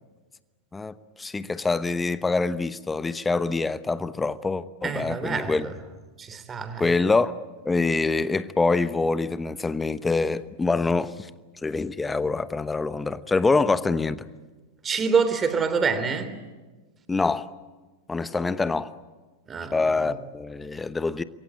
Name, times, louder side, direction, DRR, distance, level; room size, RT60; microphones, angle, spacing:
voice 1, 0.7-5.7 6.8-7.4 7.6-11.3 11.6-14.2 17.1-17.5 18.1-18.9 19.7-21.2, left 3 dB, 10° left, 1.0 m, -25 dB
voice 2, 4.8-5.6 6.2-6.8 14.8-16.3 19.5-19.7, right 5 dB, 20° right, 3.2 m, -25 dB
28.0 x 23.0 x 8.6 m
figure-of-eight pair, 90°, 0 cm